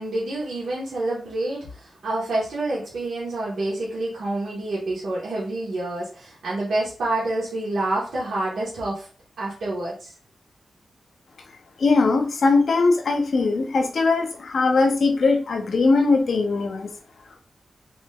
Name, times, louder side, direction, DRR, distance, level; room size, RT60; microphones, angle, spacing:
voice 1, 0.0-9.1 9.4-10.1, right 2 dB, 80° right, -6 dB, 1.2 m, -28 dB
voice 2, 11.8-16.9, left 3 dB, 70° left, 5 dB, 0.6 m, -20 dB
3.3 x 2.8 x 2.3 m, 0.38 s
cardioid pair, 55°, 0 cm